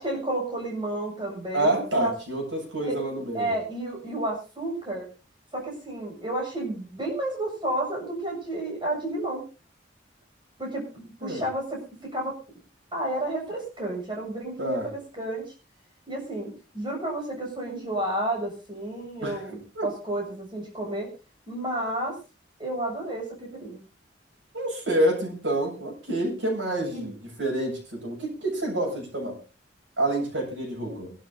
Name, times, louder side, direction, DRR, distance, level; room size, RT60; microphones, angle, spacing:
voice 1, 0.0-2.1 2.8-3.0 3.3-5.1 5.5-9.4 10.6-11.8 12.1-12.3 12.9-14.8 15.2-15.5 16.1-21.1 21.5-22.2 22.6-23.8 26.9-27.1 28.8-28.9 30.8-30.9, right 1 dB, 25° right, 0 dB, 7.0 m, -31 dB
voice 2, 1.5-3.5 11.2-11.4 14.6-14.9 19.2-19.5 19.7-19.9 24.5-29.4 30.0-31.1, right 1 dB, 90° right, 0 dB, 7.6 m, -28 dB
23.5 x 12.5 x 2.8 m, 0.33 s
head